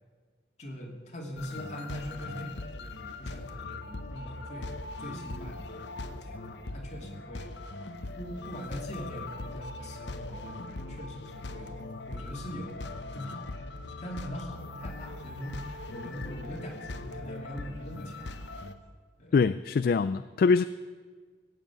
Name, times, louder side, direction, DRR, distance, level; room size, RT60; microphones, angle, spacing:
voice 1, 0.6-7.5 8.2-12.8 13.1-13.7 14.0-18.4 19.2-19.3, equal, 40° left, 2.7 m, -42 dB
sound 1, 1.4-18.7, left 2 dB, 85° left, 1.0 m, -40 dB
voice 2, 19.3-20.6, left 4 dB, 55° left, 0.3 m, -23 dB
17.5 x 7.8 x 9.0 m
head